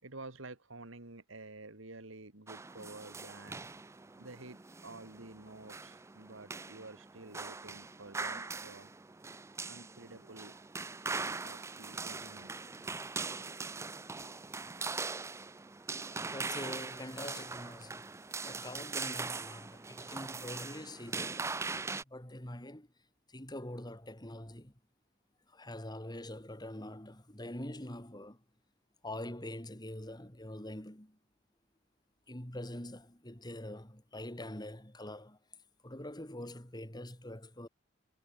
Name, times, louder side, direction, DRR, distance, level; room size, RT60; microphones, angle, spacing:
voice 1, 0.0-8.9 9.6-10.5 10.9-12.5 13.5-13.7 14.2-14.4, right 2 dB, 75° right, 2.6 m, -51 dB
sound 1, 2.5-22.0, right 4 dB, 15° right, 0.4 m, -41 dB
voice 2, 16.3-18.1 18.4-21.5 22.1-22.9 23.3-24.7 25.5-28.4 29.0-31.2 32.3-35.4 35.8-37.7, left 1 dB, 20° left, 3.7 m, -44 dB
head